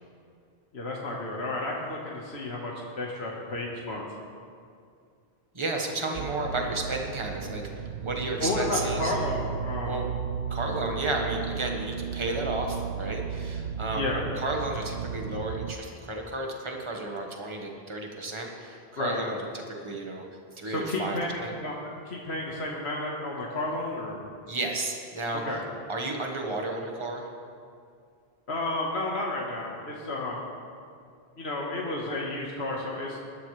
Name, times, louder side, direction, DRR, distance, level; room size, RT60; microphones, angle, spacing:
voice 1, 0.7-4.1 8.4-10.0 14.0-14.2 19.0-19.2 20.6-21.8 22.0-24.2 25.5-25.6 28.5-30.5 31.4-33.2, left 2 dB, 90° left, -3 dB, 1.7 m, -32 dB
voice 2, 5.5-9.1 9.8-10.0 10.5-14.0 14.4-19.5 19.8-20.2 20.6-21.5 24.5-25.6 25.9-27.3, right 2 dB, 30° right, 1 dB, 1.5 m, -32 dB
sound 1, 6.2-15.8, right 7 dB, 85° right, 0.9 m, -34 dB
20.0 x 12.5 x 3.3 m, 2.3 s
omnidirectional pair, 1.1 m